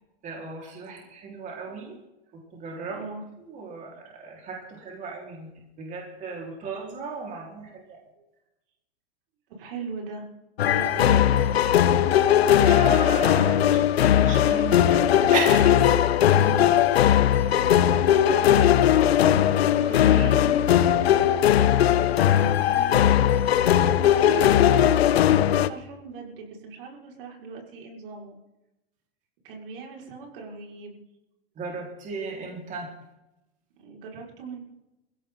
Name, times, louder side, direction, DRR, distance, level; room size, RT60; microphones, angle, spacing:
voice 1, 0.2-1.9 2.5-3.0 3.4-5.5 5.8-8.0 12.5-15.0 15.3-16.0 16.4-16.7 18.0-18.6 19.8-19.9 21.1-21.3 31.6-32.9, right 4 dB, 25° right, -2 dB, 4.6 m, -35 dB
voice 2, 9.5-10.3 10.6-11.8 18.4-18.7 19.0-19.4 19.7-20.7 22.7-23.3 24.1-24.9 25.4-28.4 29.4-31.0 33.8-34.6, right 5 dB, 60° right, -1 dB, 5.7 m, -39 dB
sound 1, 10.6-25.7, left 10 dB, 80° left, 1.0 m, -19 dB
20.5 x 16.5 x 4.0 m, 0.94 s
hypercardioid pair, 140°, 30 cm